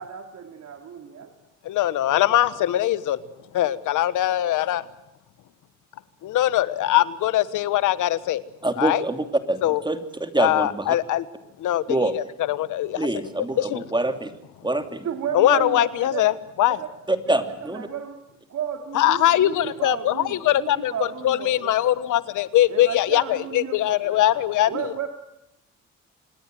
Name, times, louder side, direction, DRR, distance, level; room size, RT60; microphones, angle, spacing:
voice 1, 0.0-1.3 15.0-16.2 16.7-16.9 17.3-18.2 18.5-22.0 22.7-25.1, right 8 dB, 65° right, 5 dB, 2.7 m, -33 dB
voice 2, 1.6-3.2 3.5-4.8 6.2-8.4 8.8-9.0 9.6-9.8 10.4-11.2 11.6-13.1 13.6-13.8 15.3-16.8 18.9-24.9, left 13 dB, 80° left, 16 dB, 1.3 m, -22 dB
voice 3, 8.6-11.0 11.9-12.1 13.0-14.3 14.6-15.1 17.1-17.9, right 2 dB, 15° right, 8 dB, 2.9 m, -25 dB
27.5 x 20.0 x 7.7 m, 0.84 s
cardioid pair, 90°, 30 cm